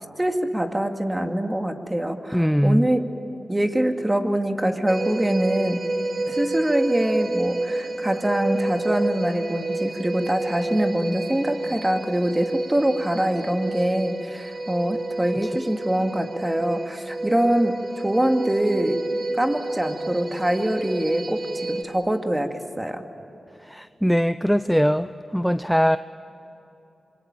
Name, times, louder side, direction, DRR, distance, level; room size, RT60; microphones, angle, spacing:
voice 1, 0.2-3.1 3.5-5.8 6.3-19.0 19.3-23.0, right 1 dB, 15° right, 5 dB, 2.4 m, -24 dB
voice 2, 2.3-2.9 15.4-15.5 23.6-26.0, equal, ahead, 12 dB, 0.6 m, -21 dB
sound 1, 4.9-21.8, right 2 dB, 55° right, 1.7 m, -29 dB
26.5 x 23.5 x 9.0 m, 3.0 s
cardioid pair, 50°, 0 cm